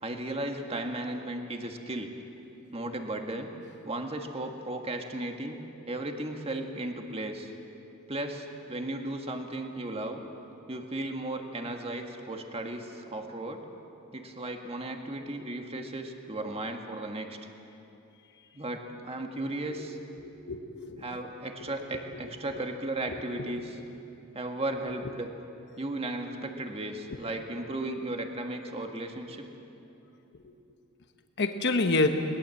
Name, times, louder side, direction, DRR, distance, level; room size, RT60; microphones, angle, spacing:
voice 1, 0.0-2.1 2.7-3.5 3.8-5.6 5.9-7.5 8.1-10.2 10.7-13.7 14.1-17.4 18.5-20.0 21.0-23.8 24.3-25.3 25.8-29.5, right 1 dB, 30° right, 4 dB, 1.7 m, -35 dB
voice 2, 20.2-21.2 23.1-23.2 30.4-30.5 31.4-32.1, left 3 dB, 55° left, 6 dB, 1.2 m, -28 dB
22.0 x 20.5 x 7.8 m, 2.9 s
head